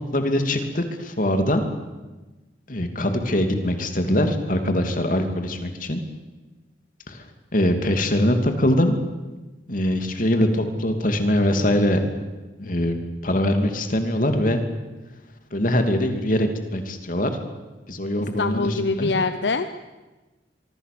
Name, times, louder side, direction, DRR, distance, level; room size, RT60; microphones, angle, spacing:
voice 1, 0.0-1.6 2.7-6.0 7.1-7.2 7.5-9.0 9.7-12.1 12.6-14.6 15.5-17.3 17.9-19.1, left 1 dB, 50° left, 6 dB, 2.8 m, -22 dB
voice 2, 18.4-19.7, left 3 dB, 80° left, 10 dB, 0.9 m, -24 dB
24.5 x 24.5 x 7.0 m, 1.2 s
head